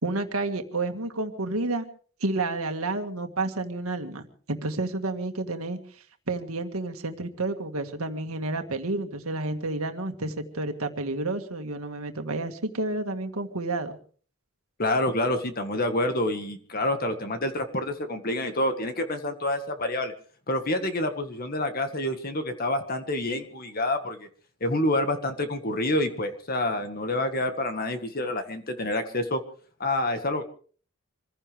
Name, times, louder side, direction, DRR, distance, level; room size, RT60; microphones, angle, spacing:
voice 1, 0.0-1.8 2.2-14.0, right 2 dB, 85° right, 6 dB, 1.9 m, -30 dB
voice 2, 14.8-20.1 20.5-24.3 24.6-29.4 29.8-30.4, left 1 dB, 45° left, 7 dB, 1.7 m, -27 dB
26.0 x 16.0 x 3.5 m, 0.43 s
head